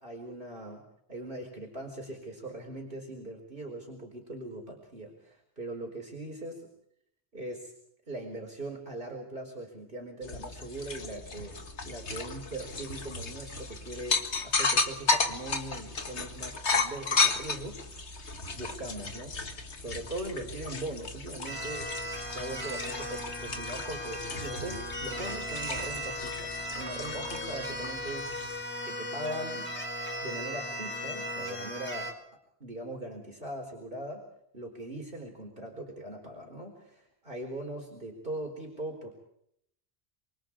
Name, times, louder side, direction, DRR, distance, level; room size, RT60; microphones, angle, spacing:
voice 1, 0.0-6.6 7.3-7.7 8.1-11.6 11.8-17.8 18.5-19.3 19.8-21.9 22.2-28.5 28.8-29.7 30.2-32.1 32.6-34.2 34.5-39.1, right 1 dB, 50° right, 1 dB, 4.7 m, -40 dB
sound 1, 10.2-28.6, left 3 dB, 85° left, 2.2 m, -34 dB
sound 2, 21.5-32.1, equal, 10° left, 5.0 m, -37 dB
27.0 x 24.5 x 4.8 m, 0.72 s
omnidirectional pair, 1.1 m